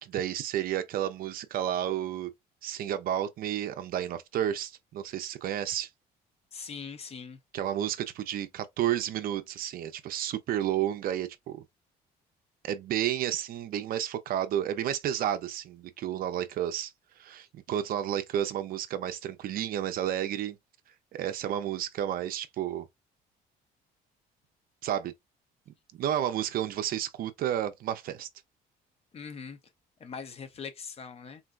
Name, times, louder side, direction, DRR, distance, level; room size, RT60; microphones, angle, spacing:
voice 1, 0.0-2.3 2.6-5.9 7.5-11.6 12.6-16.9 17.2-20.6 21.1-22.9 24.8-25.1 25.9-28.3, right 11 dB, 60° right, 0.5 m, -31 dB
voice 2, 6.5-7.4 29.1-29.6 30.0-31.4, left 6 dB, 35° left, 0.6 m, -41 dB
3.8 x 2.2 x 2.4 m
cardioid pair, 110°, 17 cm